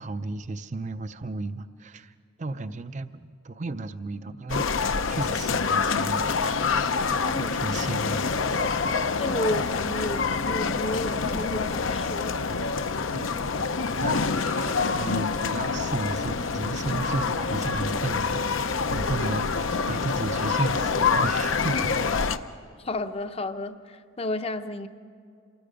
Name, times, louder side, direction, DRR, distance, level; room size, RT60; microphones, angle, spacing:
voice 1, 0.0-6.3 7.4-8.6 13.1-13.3 14.0-21.9, right 2 dB, 35° right, 11 dB, 0.5 m, -34 dB
sound 1, 4.5-22.4, left 5 dB, 75° left, 0.7 m, -26 dB
voice 2, 7.2-7.5 9.2-12.4 16.9-17.1 21.7-21.8 22.8-24.9, left 1 dB, 30° left, 9 dB, 0.7 m, -32 dB
27.5 x 20.0 x 5.1 m, 2.4 s
head